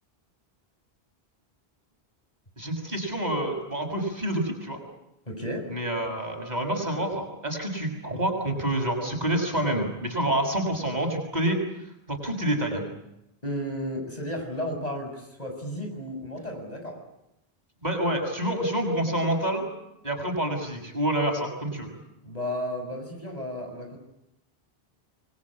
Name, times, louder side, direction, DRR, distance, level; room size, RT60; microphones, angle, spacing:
voice 1, 2.6-4.8 5.7-11.6 12.1-12.8 17.8-19.7 20.0-21.9, right 1 dB, 45° right, 3 dB, 6.7 m, -27 dB
voice 2, 5.2-5.7 13.4-17.0 22.2-24.0, equal, 40° left, 3 dB, 6.8 m, -33 dB
27.0 x 23.5 x 8.7 m, 0.86 s
omnidirectional pair, 1.0 m